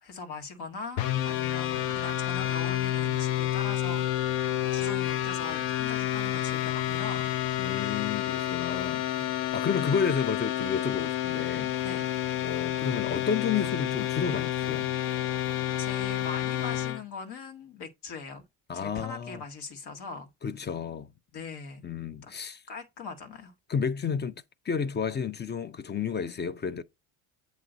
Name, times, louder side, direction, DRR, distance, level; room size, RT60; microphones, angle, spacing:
voice 1, 0.0-7.3 7.7-8.0 9.1-9.3 9.9-10.0 11.8-12.1 15.8-18.4 18.7-20.3 21.3-21.8 22.2-22.3 22.7-23.5, left 4 dB, 60° left, 1.8 m, -41 dB
sound 1, 1.0-17.0, left 12 dB, 85° left, 0.8 m, -29 dB
voice 2, 7.6-9.1 9.5-11.7 12.4-14.9 18.7-19.4 20.4-21.1 21.8-22.6 23.7-24.4 24.6-26.8, left 6 dB, 25° left, 0.5 m, -31 dB
7.7 x 3.0 x 5.0 m
supercardioid pair, 95°, 44 cm